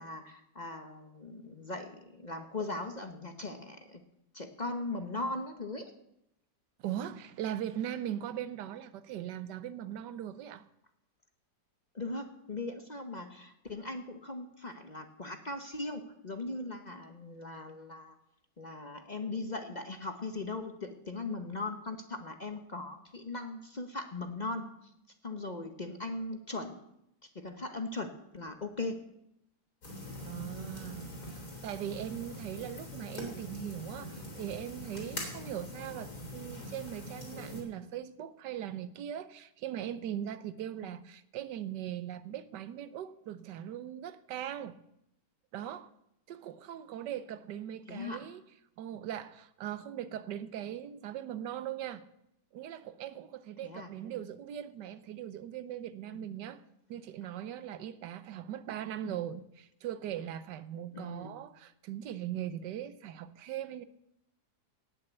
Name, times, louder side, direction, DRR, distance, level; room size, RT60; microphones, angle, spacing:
voice 1, 0.0-4.0 4.3-5.9 11.9-18.2 18.6-24.9 25.2-26.8 27.2-29.0 40.8-41.0 47.9-48.3 53.6-53.9 56.1-56.3 59.0-59.2 60.9-61.3, left 2 dB, 30° left, 0.9 m, -39 dB
voice 2, 6.8-10.6 30.2-44.8 45.5-45.9 46.3-48.4 48.8-52.0 52.5-56.6 56.9-63.8, right 10 dB, 90° right, 1.4 m, -40 dB
sound 1, 29.8-37.6, left 1 dB, 60° left, 4.1 m, -43 dB
18.0 x 6.6 x 8.0 m
omnidirectional pair, 1.8 m